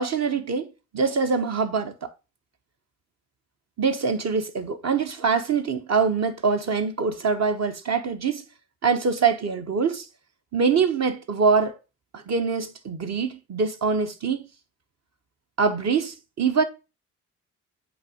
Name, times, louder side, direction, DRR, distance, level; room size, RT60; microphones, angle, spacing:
voice 1, 0.0-2.1 3.8-8.4 8.8-10.0 10.5-11.7 12.1-14.5 15.6-16.6, right 5 dB, 50° right, 1.2 m, -24 dB
7.9 x 3.2 x 5.0 m
hypercardioid pair, 50°, 34 cm